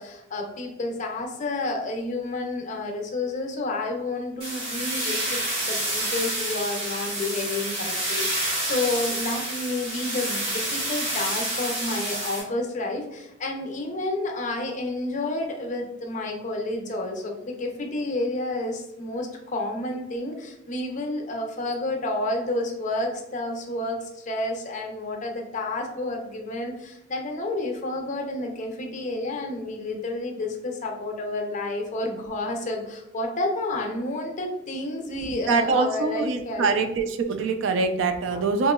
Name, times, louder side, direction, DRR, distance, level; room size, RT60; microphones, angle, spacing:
voice 1, 0.0-5.4 5.7-36.8 38.3-38.4, left 2 dB, 40° left, 2 dB, 0.5 m, -30 dB
sound 1, 4.4-12.4, right 1 dB, 90° right, 1.3 m, -28 dB
voice 2, 35.2-38.7, right 4 dB, 65° right, 7 dB, 0.3 m, -24 dB
2.9 x 2.7 x 2.2 m, 0.85 s
head